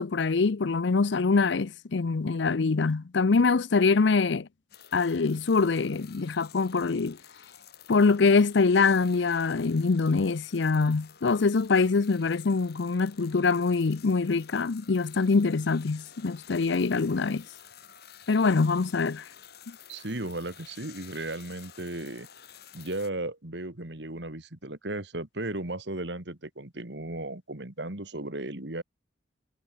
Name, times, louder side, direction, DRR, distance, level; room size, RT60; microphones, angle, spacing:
voice 1, 0.0-4.5 4.9-7.2 7.9-17.4 18.3-19.2 19.7-19.8, left 4 dB, 75° left, 0.6 m, -24 dB
sound 1, 4.7-23.1, left 9 dB, 55° left, 2.5 m, -52 dB
voice 2, 19.9-22.3 22.7-28.8, right 2 dB, 65° right, 2.7 m, -35 dB
head